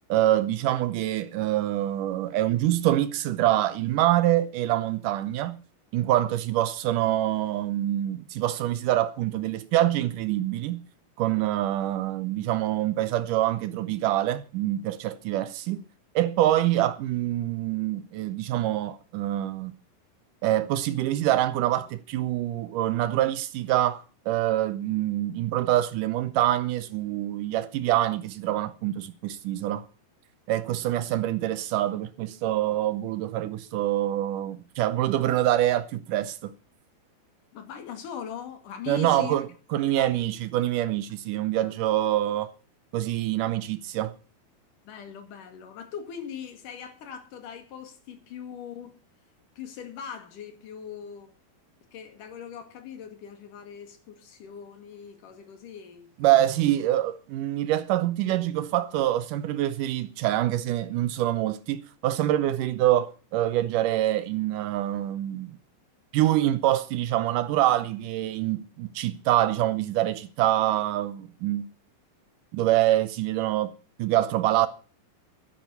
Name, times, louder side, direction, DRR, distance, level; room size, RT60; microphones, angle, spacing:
voice 1, 0.1-5.6 5.9-10.8 11.2-15.8 16.2-19.7 20.4-29.9 30.5-36.5 38.9-39.5 39.7-42.5 42.9-44.1 56.2-65.5 66.1-71.7 72.5-73.7 74.0-74.7, right 13 dB, 85° right, 1.8 m, -25 dB
voice 2, 37.5-39.4 39.9-40.1 41.5-41.7 44.8-49.0 49.6-51.3 51.9-56.7, left 8 dB, 55° left, 3.4 m, -41 dB
11.5 x 10.5 x 8.1 m
omnidirectional pair, 4.8 m